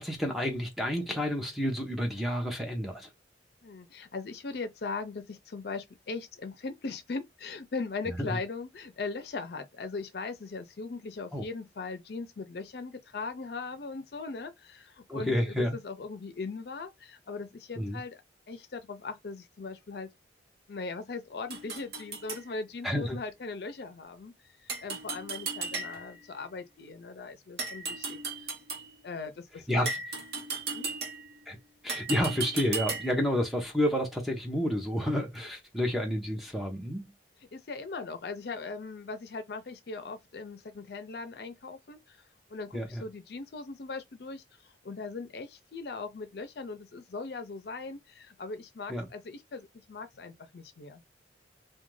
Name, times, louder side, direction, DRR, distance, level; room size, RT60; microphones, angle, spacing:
voice 1, 0.0-3.1 8.1-8.4 11.3-11.4 15.1-15.8 17.8-18.0 22.8-23.2 29.7-30.0 31.5-31.6 31.8-37.1 42.7-43.0 48.9-49.1, equal, ahead, 0.6 m, -30 dB
voice 2, 3.6-18.2 18.5-20.1 20.7-24.3 24.6-28.5 29.0-29.9 30.7-30.9 37.5-51.0, left 4 dB, 60° left, 0.5 m, -39 dB
sound 1, 21.5-22.4 24.7-26.2 27.6-28.9 29.8-31.4 31.9-33.3, right 4 dB, 65° right, 0.9 m, -36 dB
2.4 x 2.2 x 3.0 m
head